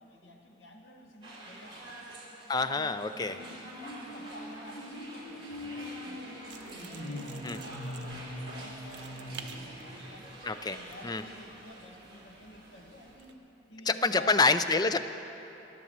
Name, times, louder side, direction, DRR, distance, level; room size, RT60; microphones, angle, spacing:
voice 1, 0.0-2.0 3.3-10.4 10.7-13.4 13.7-14.5, left 1 dB, 75° left, 1 dB, 1.6 m, -50 dB
sound 1, 1.2-13.1, right 1 dB, 25° right, 2.6 m, -48 dB
voice 2, 2.5-3.4 7.4-7.6 10.4-10.8 11.0-11.2 13.9-15.0, left 3 dB, 20° left, 10 dB, 0.4 m, -27 dB
sound 2, 2.6-10.1, left 1 dB, 50° left, 2.9 m, -43 dB
sound 3, 6.5-13.4, right 7 dB, 65° right, 0.8 m, -53 dB
12.5 x 11.0 x 7.2 m, 3.0 s
head